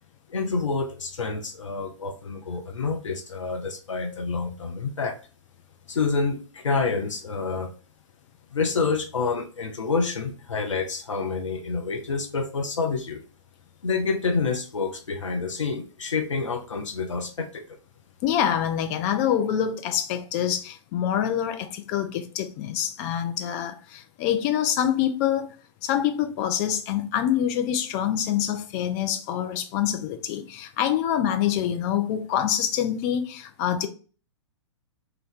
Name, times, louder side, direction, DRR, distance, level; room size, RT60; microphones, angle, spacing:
voice 1, 0.3-5.2 5.9-7.7 8.5-13.2 13.8-17.6, left 4 dB, 85° left, 0.5 m, -28 dB
voice 2, 18.2-25.5 25.8-33.9, left 10 dB, 35° left, 0.5 m, -26 dB
2.8 x 2.2 x 3.5 m
figure-of-eight pair, 115°, 16 cm